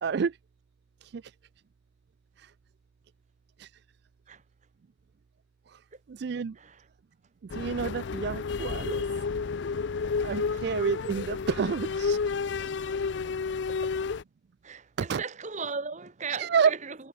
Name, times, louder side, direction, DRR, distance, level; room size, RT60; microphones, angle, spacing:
voice 1, 0.0-0.4 1.0-1.2 2.4-2.5 3.6-3.7 6.1-6.6 7.5-9.0 10.2-12.2 15.0-15.2 16.4-16.7, right 6 dB, 55° right, 0.4 m, -29 dB
sound 1, 7.5-14.2, left 5 dB, 65° left, 0.5 m, -31 dB
voice 2, 12.4-13.0 13.7-14.0 14.6-17.0, right 5 dB, 40° right, 1.3 m, -38 dB
head